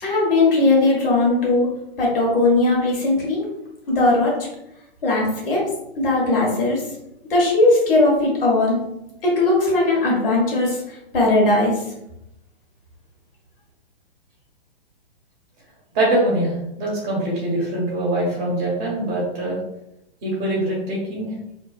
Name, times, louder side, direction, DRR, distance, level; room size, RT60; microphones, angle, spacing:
voice 1, 0.0-1.7 2.0-3.4 3.9-4.3 5.0-5.6 6.0-6.8 7.3-8.8 9.2-10.8 11.1-11.7, left 2 dB, 65° left, -3 dB, 1.5 m, -18 dB
voice 2, 15.9-19.6 20.2-21.3, right 1 dB, 30° right, -4 dB, 1.4 m, -23 dB
3.0 x 2.9 x 2.4 m, 0.84 s
hypercardioid pair, 125°, 31 cm